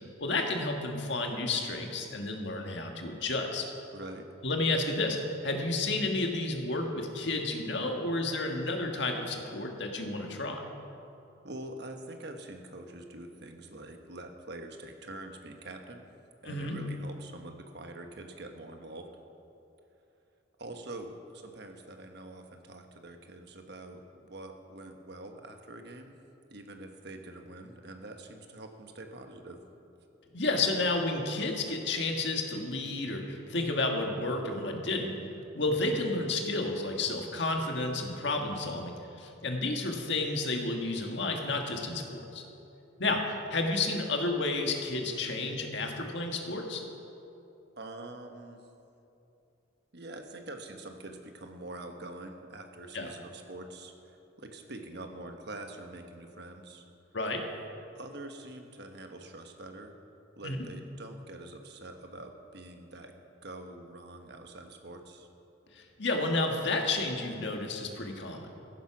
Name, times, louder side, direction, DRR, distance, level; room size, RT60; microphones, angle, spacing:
voice 1, 0.2-3.7 4.4-5.2 5.4-10.6 16.4-16.8 30.3-35.1 35.5-42.4 43.0-43.2 43.5-46.8 52.9-53.1 57.1-57.4 60.4-60.6 65.7-68.5, left 2 dB, 65° left, 2 dB, 1.7 m, -31 dB
voice 2, 3.9-4.3 11.4-16.1 16.4-19.1 20.6-26.1 26.5-29.6 47.8-48.6 49.9-56.8 57.9-59.9 60.4-63.1 63.4-65.3, right 2 dB, 60° right, 5 dB, 1.2 m, -45 dB
15.0 x 10.5 x 6.0 m, 2.8 s
head